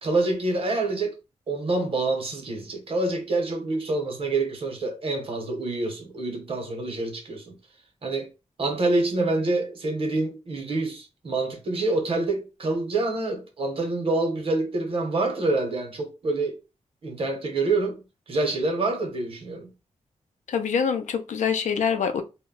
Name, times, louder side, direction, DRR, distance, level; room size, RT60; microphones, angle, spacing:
voice 1, 0.0-1.1 1.5-7.6 8.0-8.3 8.6-16.6 17.0-18.0 18.3-19.7, right 2 dB, 50° right, 0.8 m, -26 dB
voice 2, 20.5-22.2, left 7 dB, 85° left, 0.4 m, -25 dB
2.2 x 2.0 x 3.6 m
wide cardioid pair, 150°, 12 cm